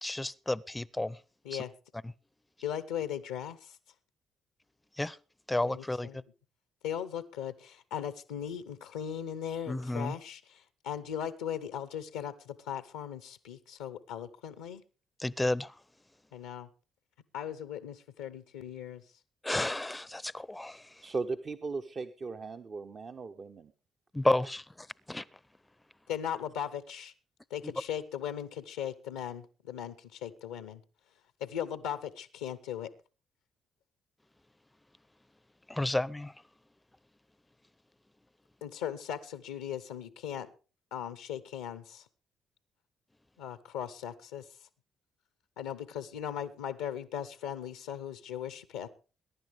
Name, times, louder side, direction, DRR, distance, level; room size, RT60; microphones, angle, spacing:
voice 1, 0.0-1.2 1.5-1.6 5.0-5.2 5.5-6.1 9.7-10.1 15.2-15.7 19.4-21.1 24.1-25.2 27.6-27.7 35.7-36.3, left 2 dB, 15° left, 0.6 m, -32 dB
voice 2, 2.6-3.8 5.6-6.2 6.8-14.8 16.3-16.7 17.3-19.0 26.1-27.1 27.5-30.8 31.4-32.9 38.6-40.5 40.9-42.1 43.4-44.5 45.6-48.9, left 9 dB, 85° left, 0.7 m, -38 dB
voice 3, 21.0-23.7, right 4 dB, 45° right, 0.8 m, -37 dB
22.0 x 10.5 x 3.4 m
hypercardioid pair, 45°, 0 cm